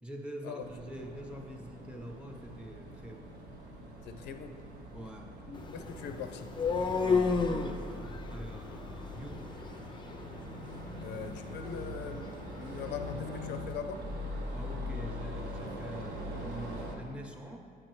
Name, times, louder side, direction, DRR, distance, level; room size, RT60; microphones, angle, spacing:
voice 1, 0.0-3.4 4.9-5.4 6.7-9.6 14.5-17.6, equal, 5° right, 2 dB, 0.8 m, -45 dB
sound 1, 0.6-17.0, left 1 dB, 80° right, 1.0 m, -42 dB
voice 2, 4.0-4.6 5.5-6.5 11.0-14.1, left 6 dB, 80° left, 7 dB, 0.5 m, -41 dB
sound 2, 5.5-13.5, left 5 dB, 25° left, 0.5 m, -35 dB
8.5 x 4.8 x 3.1 m, 2.2 s
cardioid pair, 90°, 18 cm